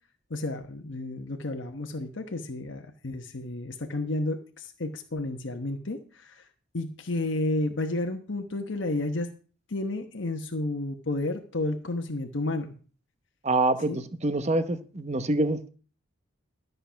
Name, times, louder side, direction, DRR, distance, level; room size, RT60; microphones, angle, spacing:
voice 1, 0.3-6.4 6.7-9.3 9.7-12.7 13.9-14.0, left 2 dB, 65° left, 4 dB, 1.1 m, -31 dB
voice 2, 13.4-15.7, right 2 dB, 35° right, 11 dB, 0.9 m, -26 dB
12.5 x 6.7 x 5.8 m, 0.39 s
head